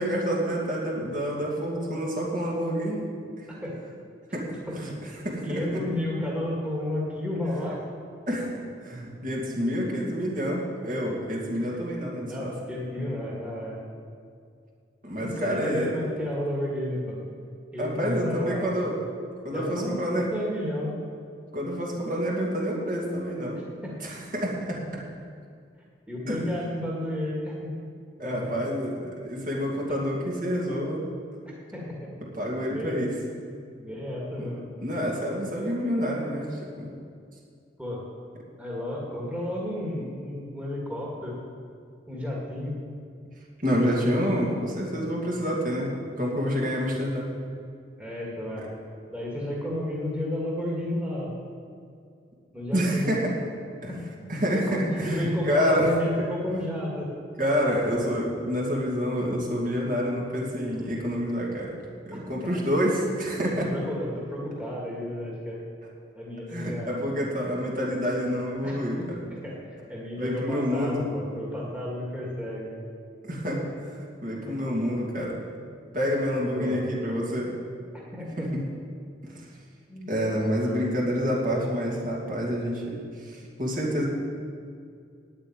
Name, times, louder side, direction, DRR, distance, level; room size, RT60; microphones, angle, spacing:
voice 1, 0.0-3.0 4.3-4.9 5.2-5.8 8.3-8.5 8.8-12.5 15.0-16.0 17.8-19.0 19.4-20.3 21.5-23.6 24.0-24.8 26.3-26.4 28.2-31.0 32.3-33.2 34.4-34.5 34.8-36.9 43.6-47.3 48.6-48.7 52.7-53.3 53.8-53.9 54.3-55.9 57.4-61.7 62.0-63.7 66.5-69.2 70.2-71.0 73.2-73.6 74.2-75.4 75.9-77.5 78.4-78.6 80.1-84.1, equal, 45° right, -3 dB, 2.4 m, -28 dB
voice 2, 5.4-7.8 11.7-11.8 12.2-13.8 15.2-17.2 17.7-18.7 19.5-20.0 20.2-21.0 23.5-24.0 26.1-27.7 28.2-28.5 29.9-30.0 31.7-32.1 32.7-33.0 33.8-34.7 37.8-38.0 38.6-41.4 42.1-42.8 48.0-48.7 49.1-51.3 52.5-53.1 53.9-54.1 54.5-57.1 62.1-62.5 63.7-65.6 66.1-67.0 68.6-68.8 69.3-72.7 74.5-74.6 76.5-76.8 77.4-77.5 78.1-78.5 79.9-80.1 80.5-80.8, left 1 dB, 5° right, -5 dB, 2.1 m, -32 dB
9.6 x 8.7 x 8.9 m, 2.3 s
head